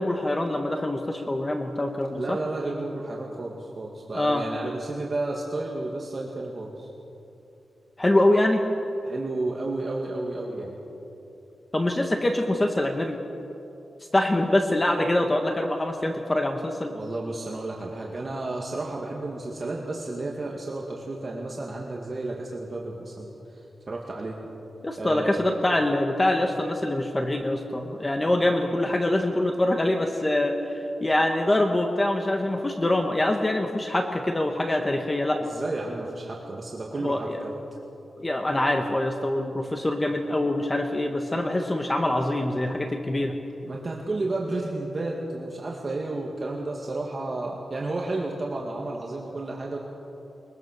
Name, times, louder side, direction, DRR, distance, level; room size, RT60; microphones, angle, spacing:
voice 1, 0.0-2.4 4.1-4.4 8.0-8.6 11.7-13.2 14.1-16.9 24.8-35.4 37.0-37.4 38.2-43.3, left 1 dB, 20° left, 4 dB, 1.3 m, -24 dB
voice 2, 2.1-6.9 9.0-10.8 16.9-24.4 25.0-25.4 35.4-37.5 43.6-49.8, right 2 dB, 35° right, -2 dB, 2.2 m, -32 dB
22.5 x 22.5 x 6.7 m, 2.9 s
wide cardioid pair, 140°, 0 cm